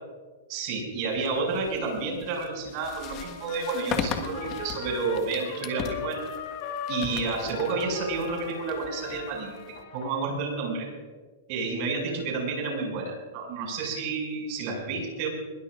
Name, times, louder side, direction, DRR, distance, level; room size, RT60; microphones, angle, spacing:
voice 1, 0.5-6.3 6.9-10.9 11.5-15.3, right 4 dB, 45° right, 1 dB, 6.5 m, -30 dB
sound 1, 1.1-9.8, left 7 dB, 35° left, 1.5 m, -38 dB
Trumpet, 3.0-10.3, left 8 dB, 55° left, 1.8 m, -39 dB
23.0 x 21.5 x 2.5 m, 1.4 s
supercardioid pair, 150°, 0 cm